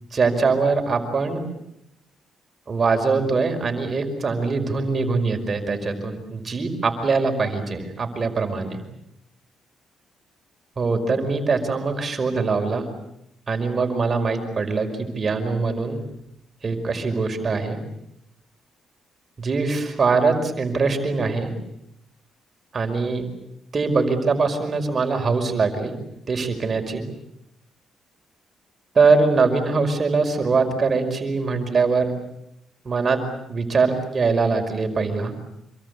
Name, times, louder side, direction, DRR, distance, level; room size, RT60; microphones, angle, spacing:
voice 1, 0.1-1.4 2.7-8.8 10.8-12.9 13.5-16.0 16.6-17.8 19.4-21.5 22.7-23.3 23.7-26.0 26.3-27.0 29.0-32.1 32.9-33.2 33.5-35.3, right 4 dB, 40° right, 6 dB, 5.3 m, -22 dB
27.0 x 24.0 x 8.3 m, 0.81 s
cardioid pair, 90°, 0 cm